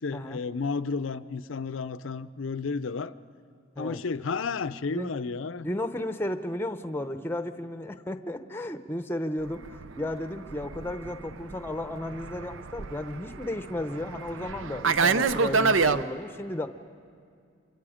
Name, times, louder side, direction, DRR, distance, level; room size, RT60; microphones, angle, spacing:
voice 1, 0.0-3.1 3.8-5.7, left 4 dB, 85° left, 13 dB, 0.6 m, -32 dB
voice 2, 5.6-16.7, left 1 dB, 10° left, 9 dB, 0.7 m, -34 dB
Fixed-wing aircraft airplane, 9.5-16.0, right 4 dB, 80° right, 0.6 m, -28 dB
28.5 x 26.0 x 5.0 m, 2.3 s
head